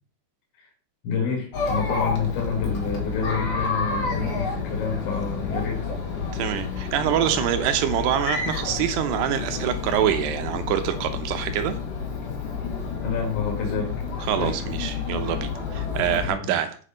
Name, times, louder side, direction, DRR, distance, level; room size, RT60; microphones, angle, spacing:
voice 1, 1.0-5.9 13.0-13.9 14.4-14.6 16.2-16.5, left 5 dB, 85° left, -1 dB, 4.4 m, -28 dB
Chatter, 1.5-16.3, left 5 dB, 50° left, 2.2 m, -30 dB
voice 2, 6.3-11.8 14.2-16.8, right 10 dB, 75° right, 8 dB, 2.7 m, -25 dB
8.4 x 6.5 x 5.0 m, 0.43 s
omnidirectional pair, 5.2 m